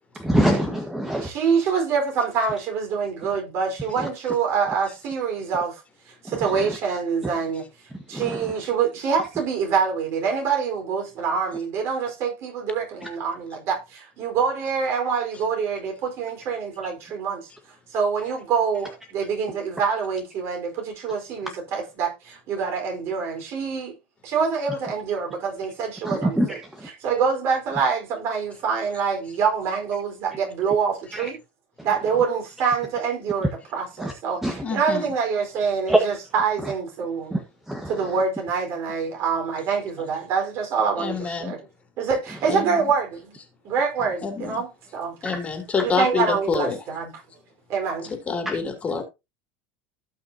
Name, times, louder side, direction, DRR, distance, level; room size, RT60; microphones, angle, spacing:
voice 1, 0.2-1.3 4.0-4.1 6.3-6.8 8.1-8.5 26.0-26.9 31.1-31.3 34.0-34.1 34.4-34.6 35.9-36.0 36.6-36.7 37.3-38.1 45.2-45.4 48.4-48.6, right 1 dB, 5° right, 1.5 m, -25 dB
voice 2, 1.1-5.8 6.2-7.6 8.1-17.5 17.9-23.9 24.2-26.6 27.0-31.4 31.8-34.4 34.7-37.3 37.9-41.6 42.0-43.4 43.6-45.1 45.8-47.1 47.7-48.1, right 6 dB, 50° right, 4.6 m, -25 dB
voice 3, 34.6-35.1 41.0-41.6 42.5-42.9 44.2-44.6 45.2-46.8 48.3-49.0, left 5 dB, 25° left, 3.1 m, -27 dB
17.5 x 5.9 x 2.9 m
supercardioid pair, 125°, 6 cm